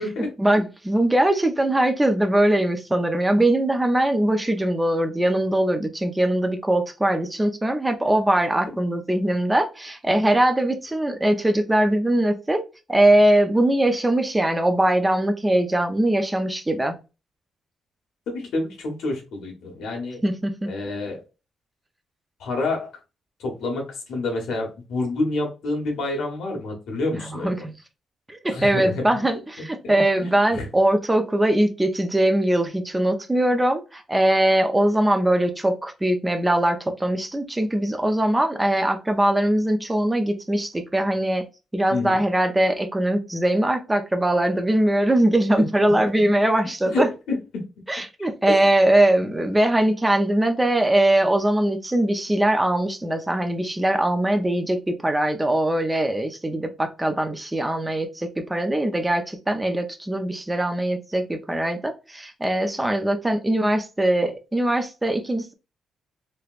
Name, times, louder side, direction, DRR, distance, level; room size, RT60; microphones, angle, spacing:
voice 1, 0.4-12.6 12.9-17.0 20.2-20.7 27.1-27.7 28.3-41.5 41.7-47.1 47.9-65.5, right 1 dB, 10° right, 0.5 m, -21 dB
voice 2, 18.3-20.2 20.7-21.2 22.4-22.9 23.4-27.7 28.5-29.0 29.8-30.7 41.9-42.2 45.6-46.1 46.9-47.6 48.2-48.7, left 2 dB, 85° left, 1.3 m, -28 dB
3.3 x 2.9 x 2.4 m
cardioid pair, 140°, 0 cm